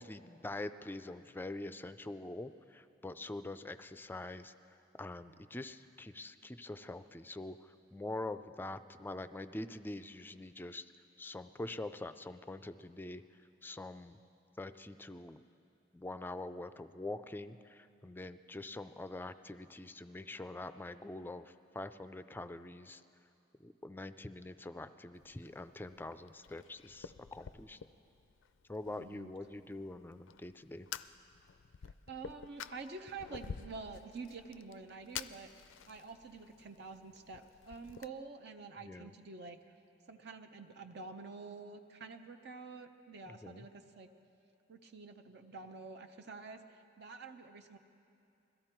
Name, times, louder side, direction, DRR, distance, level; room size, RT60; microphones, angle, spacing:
voice 1, 0.0-4.5 5.0-10.9 11.2-13.2 13.6-14.2 14.6-15.4 15.9-23.0 23.6-27.8 28.7-30.9 38.8-39.1 43.3-43.7, left 2 dB, 10° left, 12 dB, 0.3 m, -44 dB
Fire, 25.1-38.1, left 7 dB, 85° left, 0.4 m, -50 dB
voice 2, 28.9-29.3 31.8-39.6 40.1-44.1 44.7-47.8, right 4 dB, 60° right, 6 dB, 0.6 m, -48 dB
21.5 x 14.5 x 4.5 m, 2.6 s
head